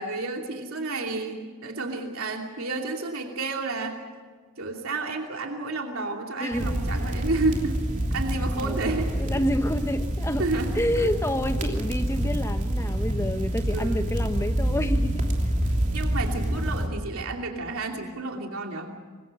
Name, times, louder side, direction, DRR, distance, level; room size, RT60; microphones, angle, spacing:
voice 1, 0.0-4.0 4.6-7.8 8.1-9.2 10.4-10.7 11.0-11.1 11.6-11.8 13.7-14.0 15.9-19.0, right 3 dB, 90° right, 2 dB, 2.8 m, -31 dB
voice 2, 6.4-7.2 8.6-10.5 10.7-15.5, equal, 15° left, 7 dB, 1.3 m, -29 dB
sound 1, 6.5-16.9, equal, 35° right, 3.0 m, -27 dB
26.0 x 22.0 x 6.4 m, 1.5 s
head